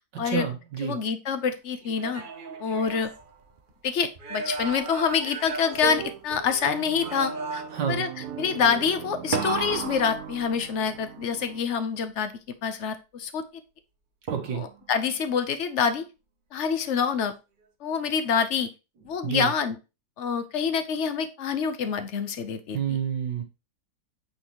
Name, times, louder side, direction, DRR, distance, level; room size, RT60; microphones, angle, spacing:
voice 1, 0.1-1.0 7.7-8.0 14.3-14.6 19.2-19.5 22.7-23.4, right 8 dB, 75° right, 3 dB, 2.1 m, -29 dB
voice 2, 0.8-2.2 2.6-3.1 3.8-8.1 8.4-12.3 12.6-13.4 14.5-16.0 16.5-17.3 17.8-18.7 19.0-19.8 20.2-22.8, left 6 dB, 50° left, 10 dB, 1.0 m, -26 dB
sound 1, 1.8-3.7 4.2-6.6 7.0-8.0 9.3-10.9 14.3-14.9, right 4 dB, 40° right, 0.8 m, -35 dB
sound 2, 5.7-11.6, right 10 dB, 60° right, 1.1 m, -38 dB
8.9 x 4.3 x 3.0 m, 0.27 s
omnidirectional pair, 1.9 m